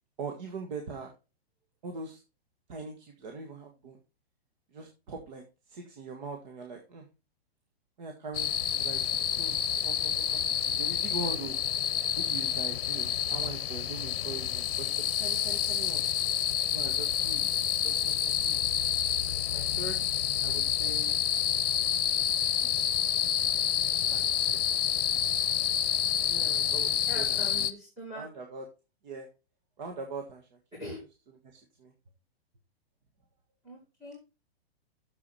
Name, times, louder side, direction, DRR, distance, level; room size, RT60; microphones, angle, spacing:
voice 1, 0.2-1.1 1.8-2.2 2.7-4.0 4.7-5.4 5.7-7.0 8.0-9.1 9.4-11.6 12.2-16.0 16.7-17.5 17.8-18.6 19.3-20.1 20.4-21.2 22.6-22.7 24.0-24.7 26.2-27.6 28.1-28.6 29.0-29.3 29.8-30.6 31.4-31.9, right 4 dB, 45° right, 3 dB, 1.6 m, -42 dB
sound 1, 8.3-27.7, left 9 dB, 60° left, 0.8 m, -28 dB
voice 2, 27.1-28.2 30.7-31.0 33.6-34.2, equal, 10° right, -6 dB, 3.0 m, -42 dB
8.4 x 7.1 x 4.1 m, 0.29 s
hypercardioid pair, 165°, 32 cm